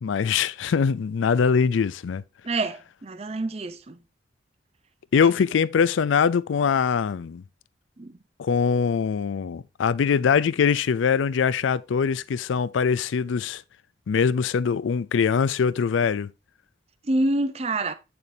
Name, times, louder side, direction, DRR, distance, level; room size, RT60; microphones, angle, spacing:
voice 1, 0.0-2.2 5.1-7.4 8.4-13.6 14.1-16.3, left 6 dB, 85° left, 0.4 m, -22 dB
voice 2, 2.4-4.0 8.0-8.1 17.0-17.9, right 2 dB, 35° right, 0.5 m, -27 dB
8.2 x 6.9 x 2.7 m
head